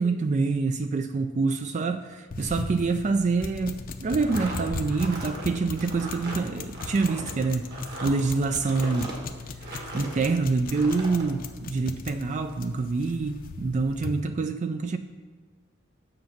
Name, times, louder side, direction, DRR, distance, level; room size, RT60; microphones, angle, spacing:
voice 1, 0.0-9.1 9.9-15.0, right 4 dB, 35° right, 0.3 m, -26 dB
sound 1, 2.3-14.2, left 3 dB, 45° left, 0.6 m, -38 dB
sound 2, 4.1-10.3 10.7-11.3, right 1 dB, 55° right, 1.8 m, -39 dB
7.9 x 7.1 x 5.8 m
head